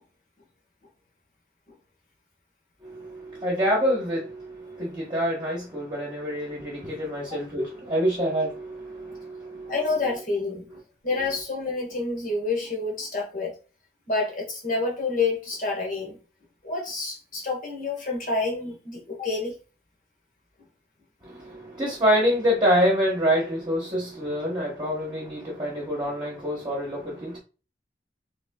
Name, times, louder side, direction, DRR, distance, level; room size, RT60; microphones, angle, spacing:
voice 1, 2.8-9.7 21.2-27.4, equal, 25° right, 1.2 m, -26 dB
voice 2, 9.7-10.7 11.0-13.5 14.1-16.2 16.6-19.6, left 3 dB, 45° left, 1.6 m, -28 dB
3.5 x 3.3 x 3.7 m
head